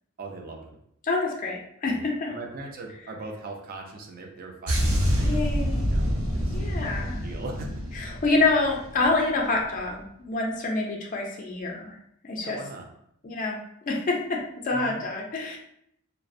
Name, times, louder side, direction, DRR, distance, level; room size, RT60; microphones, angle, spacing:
voice 1, 0.2-0.8 1.8-5.3 5.9-6.1 6.3-6.6 6.9-7.8 12.4-12.9 14.7-15.0, right 2 dB, 45° right, 2 dB, 0.4 m, -40 dB
voice 2, 1.0-2.3 5.2-5.9 6.5-7.2 8.0-11.9 12.2-12.6 13.2-13.6 13.9-14.4 14.6-15.6, left 3 dB, 40° left, 0 dB, 0.4 m, -27 dB
sound 1, 4.7-9.2 9.5-9.8, equal, 75° right, 0.7 m, -27 dB
2.4 x 2.0 x 2.5 m, 0.72 s
head